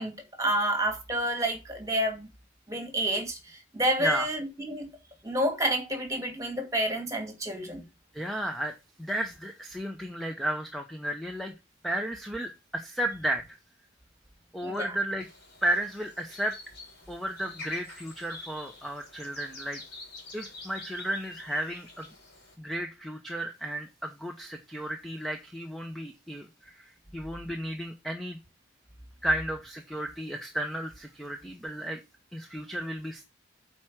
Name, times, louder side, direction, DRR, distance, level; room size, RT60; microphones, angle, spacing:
voice 1, 0.0-2.3 2.7-4.9 5.2-7.8 14.6-14.9, right 1 dB, 15° right, 2.3 m, -29 dB
voice 2, 8.1-11.5 11.8-13.4 14.5-15.3 15.6-16.6 17.1-19.8 20.3-22.1 22.6-28.4 29.2-32.0 32.3-33.2, right 1 dB, ahead, 0.8 m, -33 dB
sound 1, 15.2-22.5, left 3 dB, 55° left, 3.6 m, -46 dB
8.3 x 4.5 x 6.0 m
head